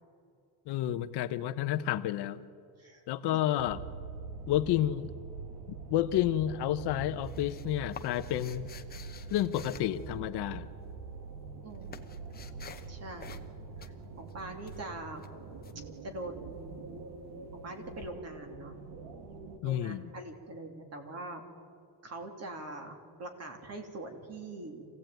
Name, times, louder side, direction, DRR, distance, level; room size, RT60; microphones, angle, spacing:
voice 1, 0.7-2.5 3.1-3.8 4.5-5.1 5.9-8.7 9.3-10.7 19.6-20.1, left 12 dB, 60° left, 12 dB, 0.9 m, -30 dB
sound 1, 3.6-19.6, right 4 dB, 60° right, 2.3 m, -44 dB
sound 2, 6.8-10.6 11.4-12.9 13.2-13.5 13.8-15.8 18.0-18.1, left 7 dB, 20° left, 0.9 m, -50 dB
voice 2, 11.6-12.2 12.9-13.4 13.8-15.3 16.0-16.9 17.5-18.7 19.6-21.5 22.0-24.9, right 2 dB, 35° right, 5 dB, 2.9 m, -43 dB
26.0 x 16.5 x 9.1 m, 2.4 s
cardioid pair, 175°, 46 cm